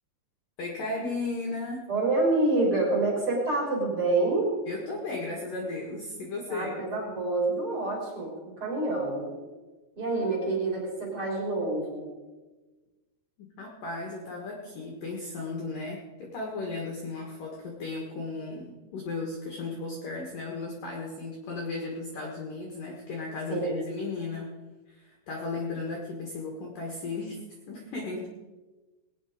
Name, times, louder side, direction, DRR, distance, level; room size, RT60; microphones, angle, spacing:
voice 1, 0.6-1.9 4.7-6.7 13.4-24.5 24.9-27.4 27.7-28.3, left 3 dB, 60° left, 0 dB, 2.5 m, -35 dB
voice 2, 1.9-4.5 6.5-9.3 10.0-12.1 23.5-23.8, right 2 dB, 30° right, -4 dB, 4.1 m, -27 dB
20.0 x 9.4 x 5.0 m, 1.2 s
omnidirectional pair, 5.9 m